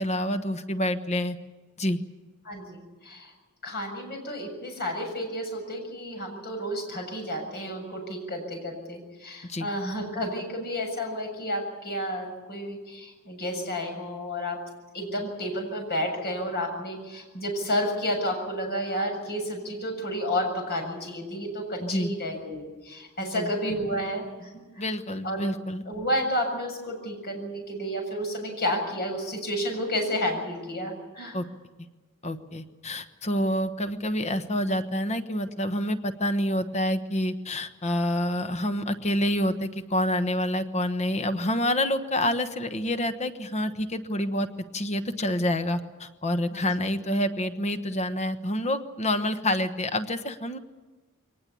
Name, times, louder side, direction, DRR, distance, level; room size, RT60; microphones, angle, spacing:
voice 1, 0.0-1.4 1.8-2.0 9.5-9.7 21.8-22.1 23.2-23.5 24.8-25.8 31.3-31.5 32.2-44.5 44.7-50.6, left 1 dB, 30° left, 9 dB, 1.2 m, -27 dB
voice 2, 2.4-3.3 3.6-14.6 14.9-24.5 24.8-24.9 25.2-25.5 25.9-31.4 46.5-46.7, equal, 50° left, 3 dB, 7.2 m, -31 dB
23.0 x 19.5 x 8.5 m, 1.3 s
head